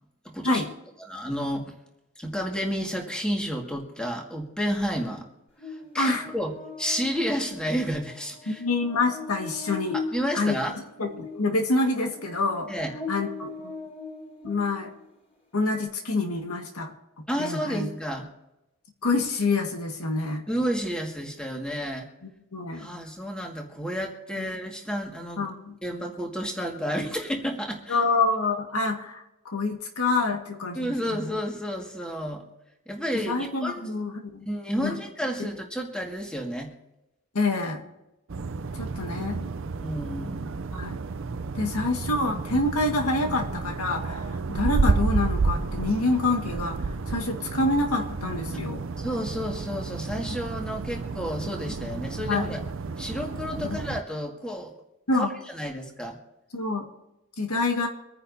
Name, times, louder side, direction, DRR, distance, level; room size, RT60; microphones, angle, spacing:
voice 1, 0.3-0.6 1.0-1.7 2.2-5.3 5.7-6.5 6.8-8.6 9.9-10.7 12.7-12.9 17.3-18.3 20.5-22.1 22.7-25.5 25.8-28.0 30.8-32.4 32.9-33.9 34.5-36.7 39.8-40.5 49.0-52.6 53.0-54.7 55.1-56.2, equal, 5° left, 0 dB, 1.9 m, -31 dB
Buzz, 5.6-15.0, left 4 dB, 25° left, 4.5 m, -40 dB
voice 2, 8.5-10.0 10.3-10.5 11.0-12.7 13.1-13.7 14.4-14.9 15.5-16.9 17.4-17.9 19.0-20.4 22.5-22.9 24.4-24.5 25.4-25.7 27.9-31.4 33.1-34.5 34.8-35.0 37.3-37.8 38.7-39.5 40.7-41.0 41.6-46.8 47.1-48.8 52.3-52.6 53.7-53.8 55.1-55.3 56.5-56.9 57.4-57.9, left 3 dB, 85° left, 4 dB, 1.7 m, -27 dB
sound 1, 38.3-54.0, right 4 dB, 60° right, 0.5 m, -31 dB
25.0 x 9.9 x 2.7 m, 0.93 s
head